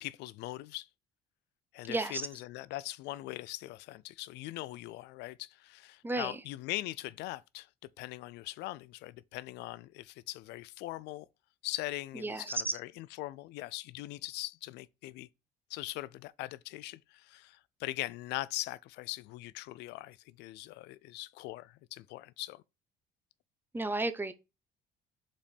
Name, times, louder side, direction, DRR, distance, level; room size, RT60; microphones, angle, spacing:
voice 1, 0.0-0.9 1.7-7.7 8.0-11.3 11.6-15.3 15.7-22.6, left 18 dB, 85° left, 0.4 m, -41 dB
voice 2, 1.9-2.2 6.0-6.4 12.2-12.7 23.7-24.3, right 2 dB, 10° right, 0.7 m, -32 dB
5.2 x 4.2 x 5.1 m
cardioid pair, 110°, 17 cm